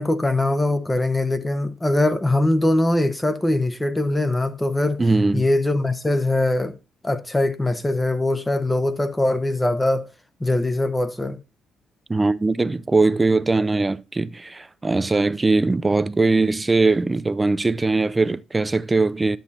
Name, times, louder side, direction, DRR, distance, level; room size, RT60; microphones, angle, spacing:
voice 1, 0.0-5.0 5.3-6.7 7.0-10.1 10.4-11.4, left 1 dB, 15° left, 0.9 m, -22 dB
voice 2, 5.0-5.4 12.1-19.4, right 3 dB, 20° right, 0.5 m, -20 dB
12.0 x 7.2 x 2.7 m
cardioid pair, 90°, 0 cm